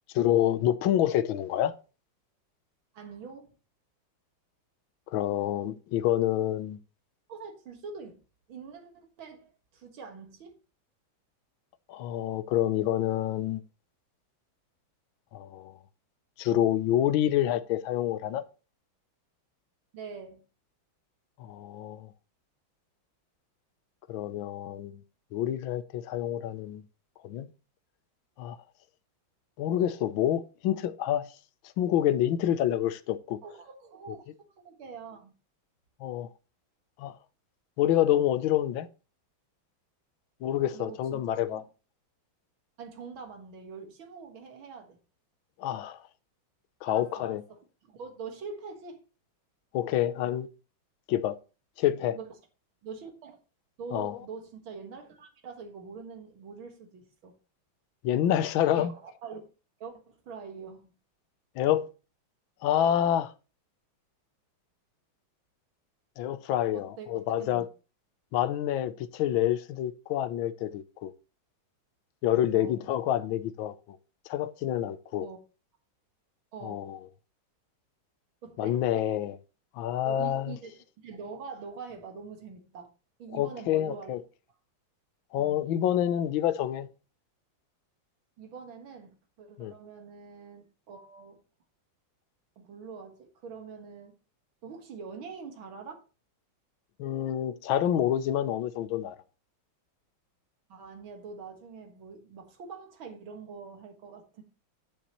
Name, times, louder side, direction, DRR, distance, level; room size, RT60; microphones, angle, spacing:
voice 1, 0.1-1.7 5.1-6.8 11.9-13.6 15.3-15.8 16.4-18.4 21.4-22.1 24.1-25.0 25.3-26.8 27.2-27.5 28.4-28.6 29.6-31.3 31.8-33.4 36.0-36.3 37.0-37.1 37.8-38.9 40.4-41.6 45.6-46.0 46.8-47.4 49.7-50.5 51.1-51.4 51.8-52.2 53.9-54.2 58.0-58.9 61.6-61.9 62.6-63.3 66.2-67.7 68.3-71.1 72.2-74.0 74.3-75.3 76.6-77.0 78.6-79.4 79.7-80.6 83.3-84.2 85.3-86.9 89.6-89.7 97.0-99.2, left 11 dB, 80° left, 1.5 m, -27 dB
voice 2, 2.9-3.5 7.3-8.2 8.5-10.6 19.9-20.4 33.4-34.3 34.6-35.3 40.7-41.6 42.8-45.0 46.9-49.0 52.1-52.3 52.8-53.4 53.8-57.4 58.7-59.4 59.8-60.9 66.7-67.7 72.5-72.8 75.2-75.4 76.5-76.9 78.4-78.8 80.0-80.7 81.0-82.9 83.2-84.2 85.4-85.6 88.4-91.4 92.6-94.2 94.6-96.0 100.7-104.4, right 5 dB, 80° right, 2.4 m, -44 dB
9.9 x 7.1 x 3.0 m
omnidirectional pair, 2.2 m